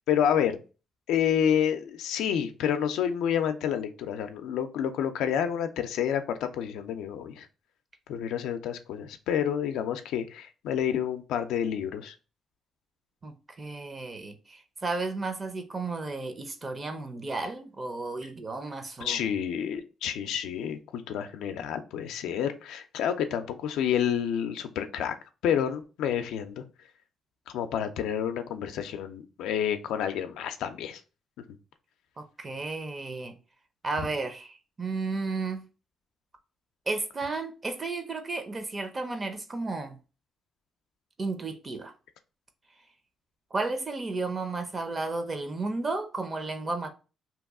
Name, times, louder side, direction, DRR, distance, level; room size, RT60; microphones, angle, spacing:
voice 1, 0.1-0.6 1.1-7.5 8.1-12.1 19.0-25.1 25.4-26.6 27.5-31.0, left 9 dB, 90° left, 0.4 m, -29 dB
voice 2, 13.2-19.3 32.2-33.3 33.8-35.7 36.9-40.0 41.2-41.9 43.5-46.9, right 3 dB, 30° right, 0.6 m, -33 dB
2.9 x 2.3 x 3.5 m
cardioid pair, 90°, 0 cm